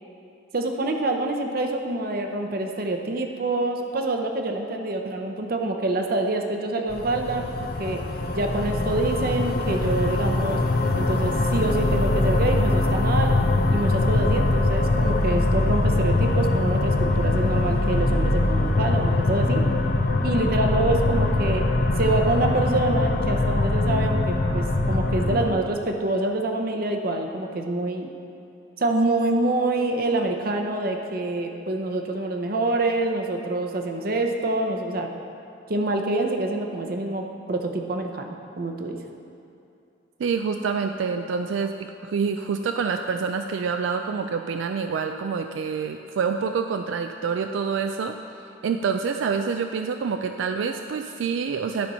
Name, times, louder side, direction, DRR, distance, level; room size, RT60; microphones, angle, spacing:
voice 1, 0.5-8.0 8.3-10.6 11.0-13.4 13.7-19.6 20.2-21.7 22.0-28.1 28.8-35.1 35.7-38.3 38.6-39.0, right 2 dB, 50° right, 3 dB, 0.7 m, -26 dB
sound 1, 6.9-25.5, left 2 dB, 50° left, 0.6 m, -22 dB
voice 2, 40.2-48.2 48.6-51.9, right 5 dB, 80° right, 6 dB, 0.3 m, -27 dB
11.5 x 4.3 x 5.5 m, 2.7 s
head